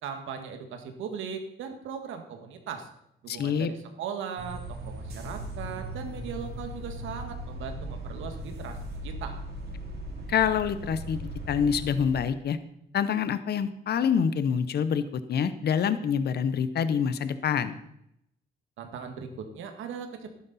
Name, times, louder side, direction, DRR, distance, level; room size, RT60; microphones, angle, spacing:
voice 1, 0.0-2.9 3.2-8.8 9.0-9.4 18.8-20.3, right 7 dB, 85° right, 6 dB, 1.7 m, -38 dB
voice 2, 3.3-3.7 10.3-11.2 11.5-12.6 12.9-17.8, left 7 dB, 55° left, 13 dB, 0.8 m, -26 dB
sound 1, 4.4-12.2, right 1 dB, 50° right, 3.0 m, -38 dB
11.5 x 11.0 x 4.1 m, 0.78 s
cardioid pair, 90°, 20 cm